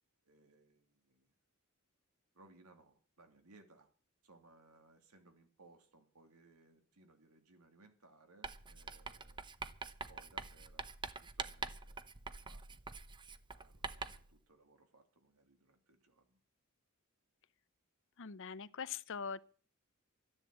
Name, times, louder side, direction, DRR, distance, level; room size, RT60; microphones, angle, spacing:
voice 1, 0.2-1.3 2.3-3.9 4.2-9.5 10.1-10.9 11.2-12.0 12.4-12.7 13.5-16.4, right 2 dB, 90° right, 2.8 m, -65 dB
Writing, 8.4-14.3, right 4 dB, 20° right, 0.7 m, -45 dB
voice 2, 18.2-19.4, left 6 dB, 60° left, 0.7 m, -42 dB
13.0 x 10.5 x 7.6 m
head